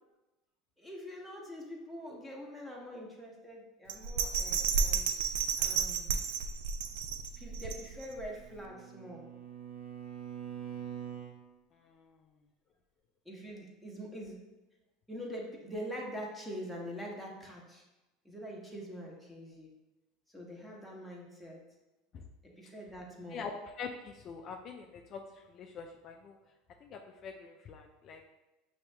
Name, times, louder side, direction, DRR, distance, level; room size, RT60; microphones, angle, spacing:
voice 1, 0.8-5.1 5.6-6.2 7.4-9.3 13.2-14.4 15.1-17.8 18.2-19.7 20.3-21.6 22.4-23.4, equal, ahead, -2 dB, 1.0 m, -44 dB
Bell, 3.9-8.2 8.6-8.7, right 6 dB, 80° right, 0.3 m, -32 dB
Bowed string instrument, 8.0-11.4, right 9 dB, 60° right, 1.2 m, -44 dB
voice 2, 11.7-12.1 22.1-22.2 23.3-26.4 26.8-28.3, left 5 dB, 40° left, 2 dB, 0.4 m, -45 dB
5.6 x 2.7 x 3.3 m, 1.0 s
supercardioid pair, 125°, 0 cm